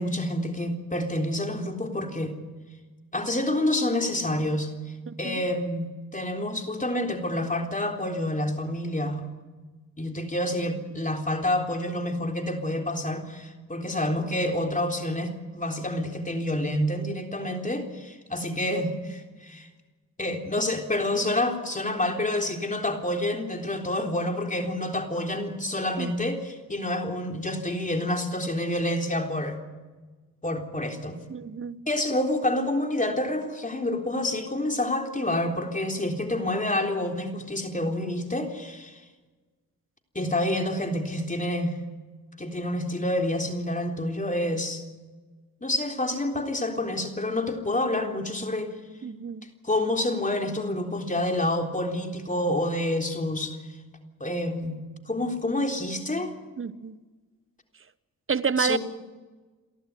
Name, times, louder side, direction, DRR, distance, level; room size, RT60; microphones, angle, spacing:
voice 1, 0.0-2.4 3.1-4.7 5.2-9.3 10.0-19.7 20.2-29.6 30.4-31.2 31.9-39.0 40.2-41.8 42.4-44.8 45.6-48.7 49.6-53.6 54.2-56.3 58.6-58.8, left 1 dB, 20° left, 3 dB, 3.7 m, -28 dB
voice 2, 5.1-5.4 26.0-26.1 31.3-31.8 49.0-49.4 56.6-56.9 58.3-58.8, right 6 dB, 35° right, 14 dB, 1.1 m, -29 dB
30.0 x 11.5 x 9.3 m, 1.3 s
cardioid pair, 70°, 35 cm